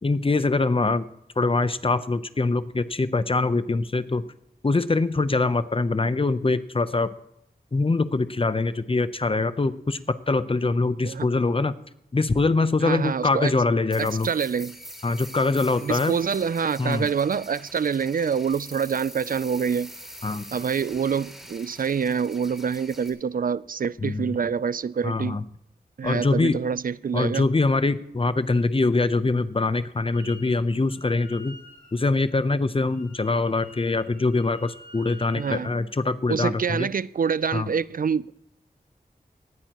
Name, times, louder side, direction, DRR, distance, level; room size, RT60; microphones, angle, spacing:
voice 1, 0.0-1.0 1.4-4.2 4.6-7.1 7.7-11.7 12.1-14.3 15.0-16.1 16.8-17.1 20.2-20.5 24.0-24.3 25.0-25.4 26.0-26.6 27.1-31.6 31.9-36.9 37.5-37.7, left 3 dB, 35° left, 0.7 m, -23 dB
voice 2, 12.8-13.5 14.0-14.8 15.8-19.9 20.5-25.4 26.0-27.5 35.3-35.7 36.3-38.3, right 6 dB, 65° right, 0.4 m, -26 dB
sound 1, 13.9-23.1, equal, ahead, 2.9 m, -44 dB
Wind instrument woodwind instrument, 30.1-30.5 30.8-35.6, left 1 dB, 60° left, 7.2 m, -49 dB
19.0 x 14.5 x 3.0 m
wide cardioid pair, 90°, 16 cm